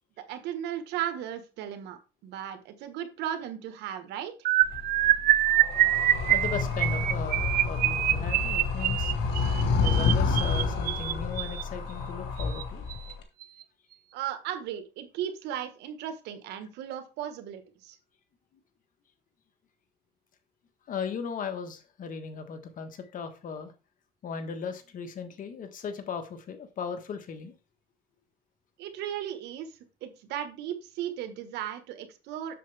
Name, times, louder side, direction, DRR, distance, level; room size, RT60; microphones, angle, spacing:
voice 1, 0.2-4.3 14.1-18.0 28.8-29.7 30.0-32.5, right 10 dB, 85° right, 8 dB, 1.5 m, -36 dB
sound 1, 4.4-11.6 12.4-12.6 12.9-13.1 13.4-13.6, right 14 dB, 60° right, 0.5 m, -25 dB
Animal, 4.6-13.2, left 4 dB, 85° left, 1.9 m, -29 dB
voice 2, 6.0-9.1 9.8-12.8 20.9-23.7 24.2-27.5, left 6 dB, 55° left, 8 dB, 1.4 m, -37 dB
7.6 x 6.7 x 3.5 m, 0.31 s
cardioid pair, 110°, 17 cm